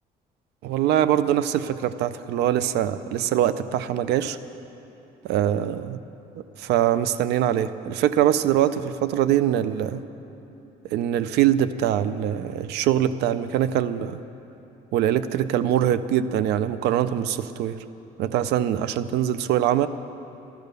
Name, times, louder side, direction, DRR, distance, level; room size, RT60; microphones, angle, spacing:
voice 1, 0.6-4.4 5.3-6.0 6.6-10.0 10.9-14.2 14.9-17.8 18.2-19.9, right 11 dB, 80° right, 14 dB, 0.5 m, -23 dB
14.0 x 14.0 x 6.7 m, 3.0 s
cardioid pair, 110°, 17 cm